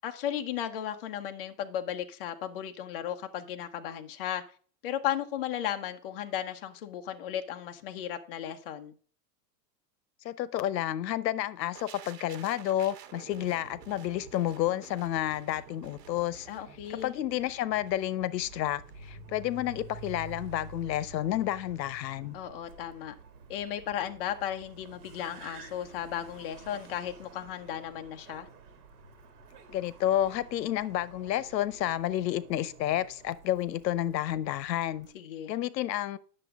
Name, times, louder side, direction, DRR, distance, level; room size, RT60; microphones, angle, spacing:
voice 1, 0.0-4.4 4.8-8.9 16.5-17.1 22.3-23.1 23.5-28.5 35.1-35.5, left 10 dB, 35° left, 0.7 m, -35 dB
voice 2, 10.2-16.5 17.0-22.3 29.7-35.1 35.5-36.2, left 13 dB, 85° left, 0.9 m, -30 dB
sound 1, 11.7-21.6 21.9-22.1, right 7 dB, 85° right, 1.6 m, -52 dB
Car, 18.4-35.1, right 4 dB, 65° right, 2.5 m, -50 dB
9.9 x 6.9 x 3.5 m
supercardioid pair, 180°, 49 cm